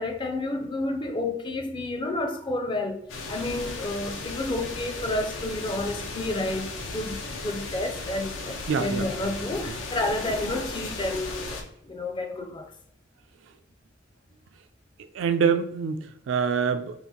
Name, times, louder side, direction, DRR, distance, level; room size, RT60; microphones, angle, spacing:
voice 1, 0.0-12.7, left 2 dB, 25° left, 0.4 m, -30 dB
sound 1, 3.1-11.6, left 3 dB, 90° left, 0.6 m, -36 dB
voice 2, 8.7-9.1 15.1-17.0, right 6 dB, 75° right, 0.3 m, -25 dB
2.8 x 2.4 x 3.7 m
head